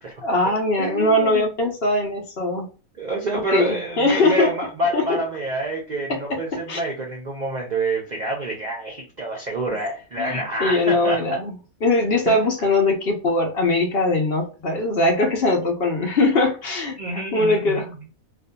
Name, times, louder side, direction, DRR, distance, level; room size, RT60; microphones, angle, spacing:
voice 1, 0.2-2.7 3.3-4.5 4.9-5.2 6.1-6.4 6.7-6.8 9.7-9.8 10.2-11.5 11.8-17.9, left 2 dB, 50° left, 0.9 m, -21 dB
voice 2, 0.8-1.5 3.0-11.2 12.3-12.4 17.0-18.0, right 2 dB, 50° right, 0.5 m, -27 dB
2.7 x 2.4 x 2.2 m
omnidirectional pair, 1.6 m